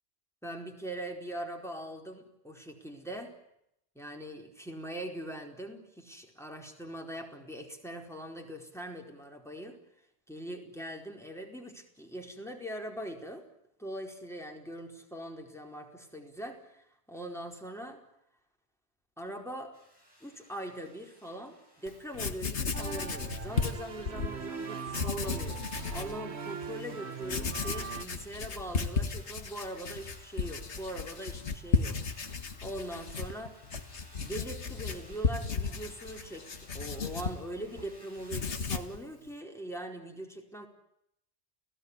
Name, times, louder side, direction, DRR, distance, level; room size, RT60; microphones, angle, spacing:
voice 1, 0.4-3.4 3.9-9.8 10.3-13.5 13.8-18.0 19.2-19.7 20.2-32.0 32.6-33.6 34.1-40.7, right 1 dB, ahead, 2 dB, 4.7 m, -41 dB
sound 1, 19.7-39.0, equal, 20° left, 6.9 m, -58 dB
Writing, 21.9-22.0 22.1-24.3 24.9-26.2 26.6-26.7 27.2-37.9 38.2-39.0, left 5 dB, 80° left, 1.9 m, -34 dB
sound 2, 22.7-28.1, right 6 dB, 70° right, 1.7 m, -41 dB
30.0 x 18.0 x 10.0 m, 0.79 s
omnidirectional pair, 1.1 m